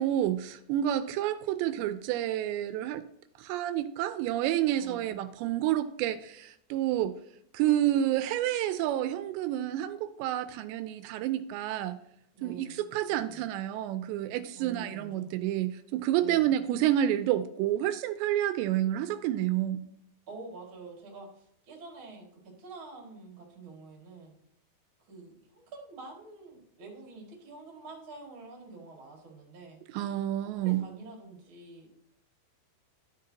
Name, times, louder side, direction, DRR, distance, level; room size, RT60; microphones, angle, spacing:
voice 1, 0.0-3.0 3.4-7.1 7.5-12.0 12.4-19.8 29.9-30.8, right 12 dB, 85° right, 2.7 m, -29 dB
voice 2, 4.8-5.1 12.3-13.5 14.5-15.3 16.2-16.5 20.3-24.3 25.1-29.8 30.4-31.9, right 3 dB, 40° right, 2.0 m, -47 dB
12.5 x 7.7 x 2.8 m
omnidirectional pair, 5.2 m